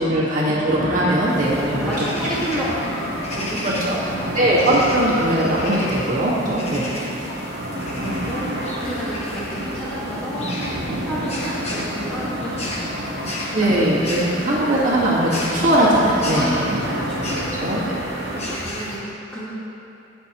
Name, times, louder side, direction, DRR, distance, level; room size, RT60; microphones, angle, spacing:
voice 1, 0.0-2.0 3.6-4.0 4.3-6.9 13.5-16.5 17.6-18.0, right 1 dB, 40° right, -7 dB, 1.6 m, -20 dB
sound 1, 0.7-18.6, right 1 dB, 60° right, 1.2 m, -30 dB
sound 2, 1.3-19.0, left 1 dB, 35° left, 1.3 m, -33 dB
voice 2, 1.5-4.2 6.5-7.2 7.9-14.1 16.3-17.5 18.3-19.5, equal, 5° left, -9 dB, 1.5 m, -32 dB
17.0 x 6.1 x 3.0 m, 2.7 s
head